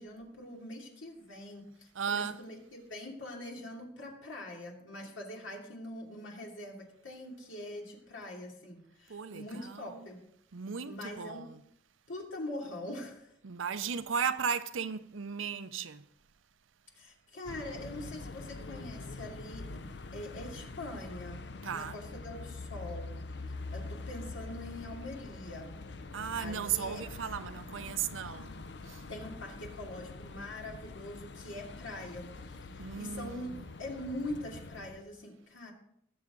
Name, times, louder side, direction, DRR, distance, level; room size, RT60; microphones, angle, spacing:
voice 1, 0.0-10.2 10.8-11.4 12.1-13.3 16.9-21.4 21.7-23.1 23.7-25.7 26.3-27.0 29.1-33.5 33.8-35.7, left 1 dB, 85° left, 2.8 m, -43 dB
voice 2, 1.9-2.4 9.1-10.1 10.5-11.6 13.4-16.0 21.6-22.0 26.1-28.5 28.9-29.0 32.8-33.6, right 7 dB, 85° right, 0.6 m, -36 dB
sound 1, 17.5-35.0, left 3 dB, 60° left, 0.6 m, -44 dB
19.5 x 7.1 x 3.8 m
head